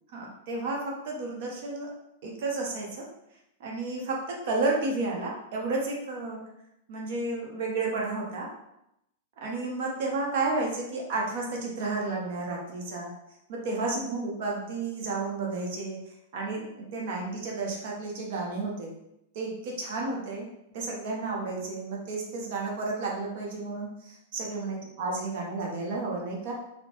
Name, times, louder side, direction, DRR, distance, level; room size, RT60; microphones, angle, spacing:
voice 1, 0.1-1.9 2.2-3.1 3.6-6.4 6.9-8.5 9.4-13.1 13.5-16.0 16.3-18.9 19.3-20.5 20.7-26.5, right 3 dB, 60° right, -1 dB, 0.7 m, -32 dB
2.8 x 2.0 x 3.0 m, 0.83 s
hypercardioid pair, 115°, 0 cm